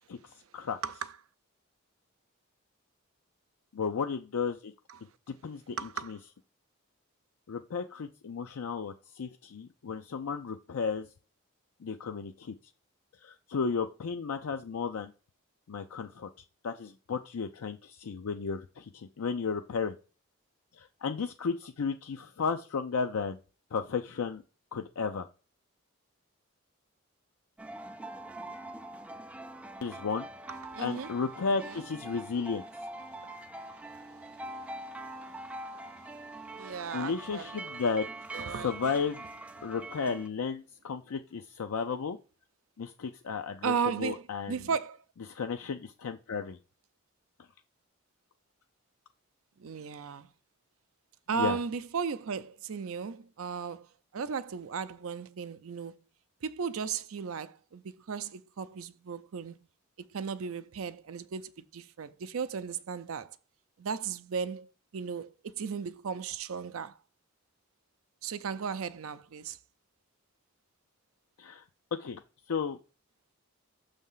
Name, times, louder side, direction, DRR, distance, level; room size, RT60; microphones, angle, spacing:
voice 1, 3.7-4.7 5.3-5.8 6.0-6.2 7.5-11.1 11.8-12.5 13.2-15.1 15.7-16.3 16.6-19.9 20.7-23.4 23.7-24.4 24.7-25.3 29.8-30.3 30.8-32.6 36.9-38.1 38.6-39.2 39.6-42.2 42.8-44.6 45.3-46.6 51.4-51.6 71.4-71.6 72.0-72.2 72.5-72.8, left 5 dB, 75° left, 0.5 m, -33 dB
voice 2, 5.8-6.2 30.5-31.1 31.6-31.8 33.7-35.0 35.7-35.9 36.5-37.6 38.3-38.7 43.6-45.0 49.6-50.3 51.3-56.0 56.4-59.7 60.1-63.4 63.8-67.0 68.2-69.6, right 6 dB, 70° right, 0.5 m, -36 dB
sound 1, 27.6-40.3, right 2 dB, 5° right, 0.3 m, -44 dB
6.4 x 3.5 x 5.5 m
head